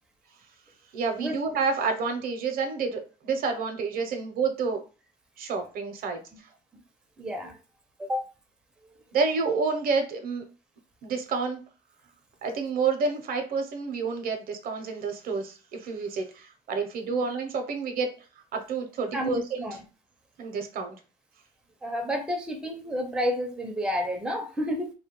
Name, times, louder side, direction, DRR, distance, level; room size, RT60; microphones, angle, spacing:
voice 1, 0.9-4.8 5.4-6.2 9.1-10.4 11.0-11.6 12.4-18.1 18.5-19.6 20.4-21.0, right 4 dB, 60° right, 6 dB, 0.6 m, -29 dB
voice 2, 7.2-7.6 8.0-8.3 19.1-19.8 21.8-24.9, equal, 5° right, 3 dB, 0.4 m, -30 dB
2.3 x 2.2 x 2.9 m, 0.34 s
cardioid pair, 110°, 17 cm